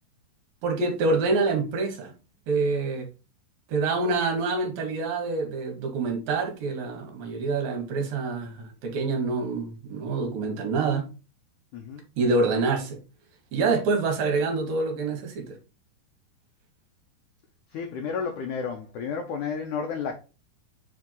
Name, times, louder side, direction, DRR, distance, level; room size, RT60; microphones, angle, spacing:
voice 1, 0.6-2.1 2.5-3.1 3.7-11.1 12.2-13.0 13.5-15.6, right 3 dB, 70° right, 2.9 m, -26 dB
voice 2, 11.7-12.0 17.7-20.2, left 6 dB, 80° left, 1.8 m, -32 dB
7.6 x 3.6 x 3.9 m
omnidirectional pair, 4.7 m